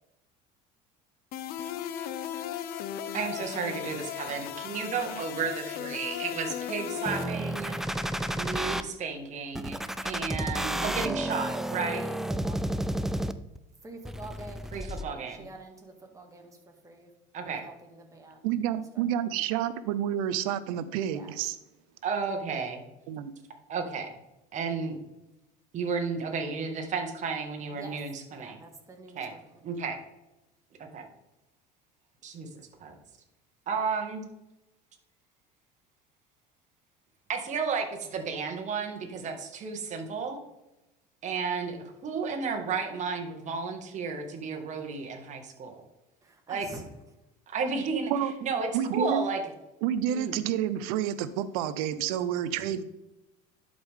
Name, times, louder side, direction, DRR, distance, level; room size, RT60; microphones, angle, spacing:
sound 1, 1.3-7.2, left 10 dB, 55° left, 0.7 m, -36 dB
voice 1, 3.1-7.8 8.4-9.8 10.0-12.1 14.7-15.5 17.3-17.6 22.0-22.8 23.7-24.1 24.5-25.0 25.7-28.6 29.2-29.3 29.6-30.0 30.8-31.1 32.2-32.5 32.8-33.0 33.7-34.3 37.3-40.4 41.2-45.8 46.5-46.7 47.5-48.1 48.4-49.4 50.1-50.3, right 5 dB, 40° right, 3 dB, 1.7 m, -33 dB
sound 2, 7.1-8.8 9.6-13.6 14.1-15.0, right 1 dB, ahead, 0.4 m, -31 dB
voice 2, 11.2-12.9 13.8-17.1 17.4-18.5 18.9-19.0 21.1-21.4 27.7-28.0 28.3-29.6 46.2-46.8, right 2 dB, 20° right, 2 dB, 1.9 m, -47 dB
voice 3, 18.4-21.6 23.1-23.3 48.1-48.3 48.7-49.2 49.8-52.8, right 10 dB, 85° right, 13 dB, 0.7 m, -29 dB
11.5 x 5.2 x 3.7 m, 0.94 s
supercardioid pair, 105°, 18 cm